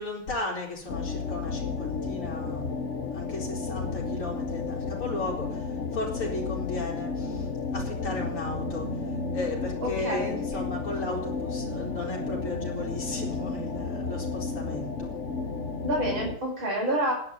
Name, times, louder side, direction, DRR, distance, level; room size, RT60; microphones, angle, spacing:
voice 1, 0.0-2.7 3.1-8.9 9.3-15.1, left 2 dB, 75° left, -6 dB, 4.6 m, -35 dB
sound 1, 0.9-16.4, left 4 dB, 40° left, 1.4 m, -32 dB
voice 2, 9.8-10.3 15.8-17.1, right 1 dB, 65° right, -3 dB, 6.1 m, -28 dB
11.0 x 9.5 x 9.3 m, 0.64 s
omnidirectional pair, 2.4 m